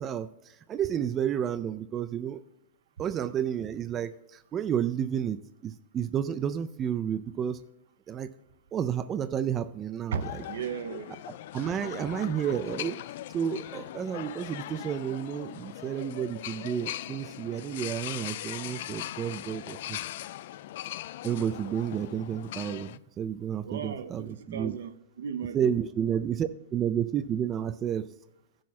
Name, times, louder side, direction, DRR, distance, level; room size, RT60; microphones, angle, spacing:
voice 1, 0.0-2.4 3.0-7.6 8.1-8.3 8.7-10.4 11.5-13.0 13.3-20.0 21.2-24.8 25.5-28.1, right 9 dB, 25° right, 0.4 m, -31 dB
voice 2, 10.1-11.1 23.6-25.7, right 7 dB, 80° right, 0.8 m, -36 dB
sound 1, 10.2-23.0, left 13 dB, 60° left, 0.3 m, -40 dB
14.0 x 6.3 x 4.2 m
hypercardioid pair, 145°, 0 cm